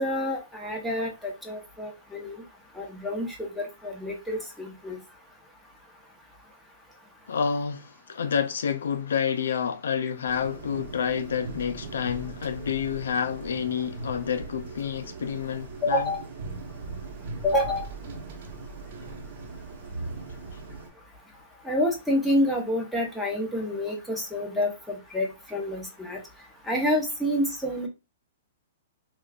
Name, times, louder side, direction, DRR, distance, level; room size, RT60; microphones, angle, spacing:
voice 1, 0.0-2.4 2.8-5.0 15.8-16.2 17.4-17.8 21.6-26.2 26.7-27.9, left 1 dB, ahead, 0.8 m, -28 dB
voice 2, 7.3-16.1, left 7 dB, 85° left, 0.4 m, -29 dB
sound 1, 10.2-20.9, right 3 dB, 60° right, 0.9 m, -39 dB
5.2 x 2.4 x 2.3 m
hypercardioid pair, 150°, 0 cm